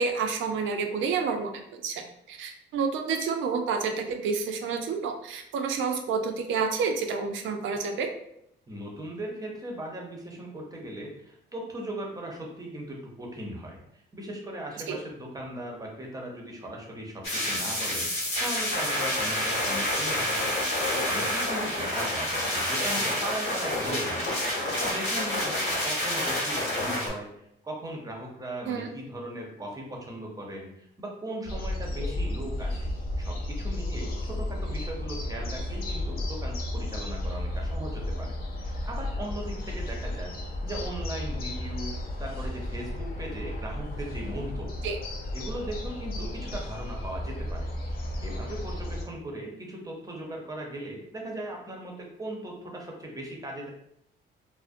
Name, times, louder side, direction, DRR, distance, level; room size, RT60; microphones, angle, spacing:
voice 1, 0.0-8.1 14.9-15.0 28.7-28.9 44.8-45.0, right 5 dB, 75° right, 4 dB, 0.4 m, -29 dB
voice 2, 8.7-32.9 33.2-40.3 40.6-41.9 42.2-44.9 45.3-47.7 48.2-53.7, right 1 dB, 20° right, -1 dB, 0.7 m, -38 dB
sound 1, 17.2-27.1, left 1 dB, 80° left, 1.0 m, -28 dB
sound 2, 31.5-49.0, left 1 dB, 50° left, 0.5 m, -33 dB
2.4 x 2.0 x 2.4 m, 0.74 s
cardioid pair, 90°, 20 cm